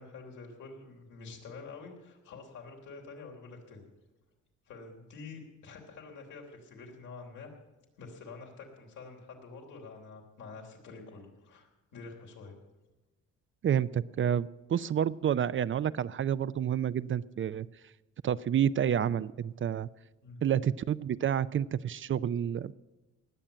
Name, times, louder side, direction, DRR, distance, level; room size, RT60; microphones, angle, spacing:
voice 1, 0.0-3.8 4.7-7.5 8.0-12.5 20.2-20.4, left 4 dB, 80° left, 0 dB, 3.5 m, -47 dB
voice 2, 13.6-17.7 18.2-19.9 20.4-22.7, right 9 dB, 40° right, 16 dB, 0.5 m, -29 dB
19.0 x 7.2 x 8.9 m, 1.1 s
cardioid pair, 90°, 30 cm